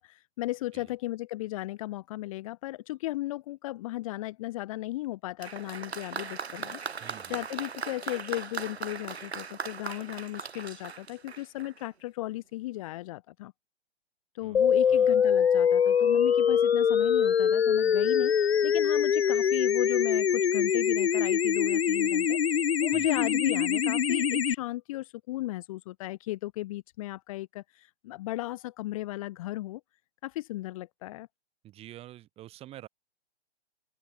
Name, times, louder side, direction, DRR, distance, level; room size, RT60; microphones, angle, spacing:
voice 1, 0.0-6.8 7.3-13.5 14.3-18.3 18.6-22.4 22.8-29.8 30.2-31.3, left 17 dB, 30° left, 2.3 m, -36 dB
Applause, 5.4-11.9 12.8-12.9, right 5 dB, 70° right, 1.1 m, -39 dB
voice 2, 7.0-7.5 14.4-15.1 22.9-23.2 31.6-32.9, right 14 dB, 20° right, 5.1 m, -48 dB
sound 1, 14.5-24.5, left 7 dB, 70° left, 0.6 m, -24 dB
open air
figure-of-eight pair, 125°, 33 cm